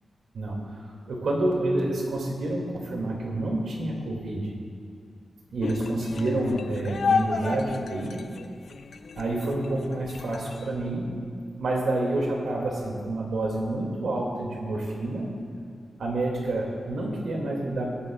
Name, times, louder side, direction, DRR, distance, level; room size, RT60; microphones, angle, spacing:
voice 1, 0.3-0.7 1.1-4.5 5.5-8.2 9.2-11.2 11.6-15.3 16.0-17.9, right 2 dB, 85° right, -1 dB, 2.1 m, -28 dB
sound 1, 5.6-10.7, left 5 dB, 60° left, 0.5 m, -31 dB
22.5 x 10.5 x 2.3 m, 2.3 s
wide cardioid pair, 155°, 0 cm